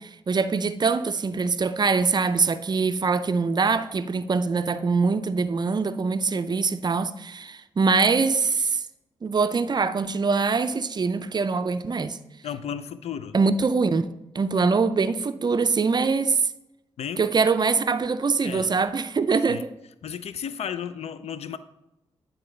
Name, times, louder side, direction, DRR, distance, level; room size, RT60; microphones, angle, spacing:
voice 1, 0.0-8.8 9.2-12.2 13.3-14.1 14.3-16.5 17.2-19.7, right 4 dB, 40° right, 0.5 m, -23 dB
voice 2, 12.4-13.4 17.0-17.2 18.4-18.7 19.5-19.6 20.0-21.6, left 8 dB, 70° left, 0.4 m, -33 dB
9.6 x 3.8 x 3.3 m
supercardioid pair, 45°, 11 cm